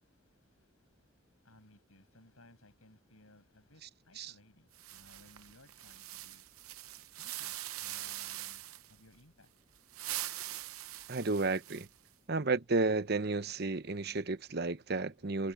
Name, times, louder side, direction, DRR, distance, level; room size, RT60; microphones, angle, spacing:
voice 1, 0.0-6.4 7.2-9.5, left 1 dB, 85° left, 6.0 m, -62 dB
sound 1, 4.7-8.9 9.8-12.1, right 14 dB, 85° right, 0.7 m, -43 dB
voice 2, 11.1-11.9 12.3-15.5, right 3 dB, 50° right, 0.9 m, -32 dB
head